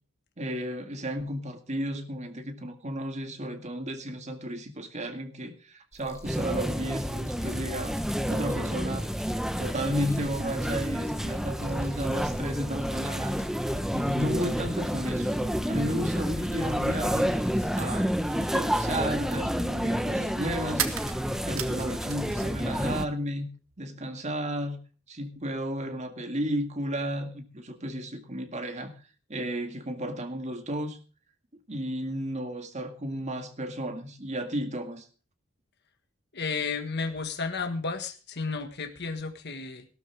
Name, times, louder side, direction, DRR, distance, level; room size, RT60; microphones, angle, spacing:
voice 1, 0.4-8.0 8.3-9.1 9.6-13.4 13.9-15.3 15.7-17.3 17.8-20.8 21.5-23.5 23.8-24.8 25.1-28.9 29.3-31.0 31.7-35.1, equal, 35° right, 2.0 m, -33 dB
sound 1, 5.9-17.8, left 1 dB, 15° left, 3.7 m, -50 dB
sound 2, 6.2-23.1, equal, ahead, 0.8 m, -29 dB
sound 3, 20.8-22.7 23.0-23.8, right 10 dB, 75° right, 1.6 m, -35 dB
voice 2, 36.3-39.9, left 4 dB, 55° left, 1.6 m, -32 dB
16.5 x 13.0 x 3.5 m
head